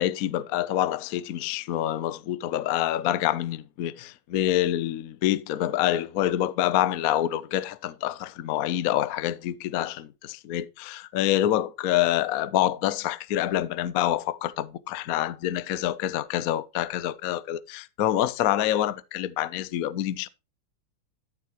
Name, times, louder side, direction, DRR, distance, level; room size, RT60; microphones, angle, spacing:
voice 1, 0.0-20.3, left 12 dB, 70° left, 0.8 m, -26 dB
13.0 x 7.0 x 2.9 m
omnidirectional pair, 2.3 m